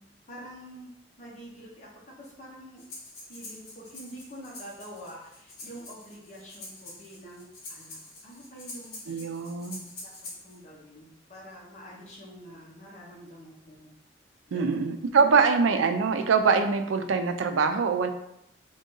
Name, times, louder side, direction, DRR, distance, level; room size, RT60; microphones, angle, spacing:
voice 1, 0.3-0.9 1.2-1.9 2.2-2.8 3.3-9.3 10.0-10.1 10.4-13.9 14.5-14.8 15.3-15.4, equal, 35° left, -4 dB, 1.0 m, -46 dB
Breathing, 2.8-10.6, left 2 dB, 50° left, 1.3 m, -45 dB
voice 2, 9.1-9.9 14.5-18.1, right 5 dB, 85° right, 8 dB, 0.4 m, -24 dB
3.5 x 2.6 x 3.8 m, 0.80 s
head